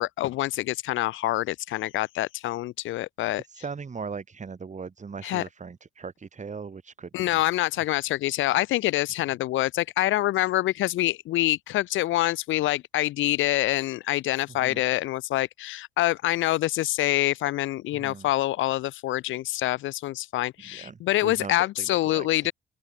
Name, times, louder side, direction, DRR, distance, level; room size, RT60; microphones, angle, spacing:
voice 1, 0.0-3.4 5.2-5.4 7.1-22.5, left 15 dB, 75° left, 0.8 m, -26 dB
voice 2, 3.5-7.4 7.8-7.9 14.5-14.8 17.9-18.3 20.7-22.3, right 5 dB, 35° right, 1.9 m, -39 dB
open air
supercardioid pair, 55°, 20 cm